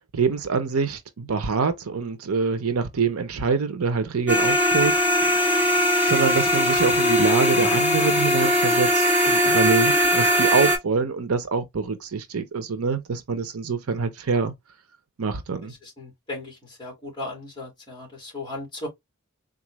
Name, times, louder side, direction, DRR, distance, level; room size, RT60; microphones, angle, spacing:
voice 1, 0.1-5.4 6.0-14.5 15.2-15.7, right 5 dB, 75° right, 0.6 m, -25 dB
sound 1, 4.3-10.8, equal, 5° right, 1.5 m, -20 dB
voice 2, 15.8-18.9, left 2 dB, 20° left, 1.8 m, -36 dB
4.0 x 2.4 x 3.0 m
head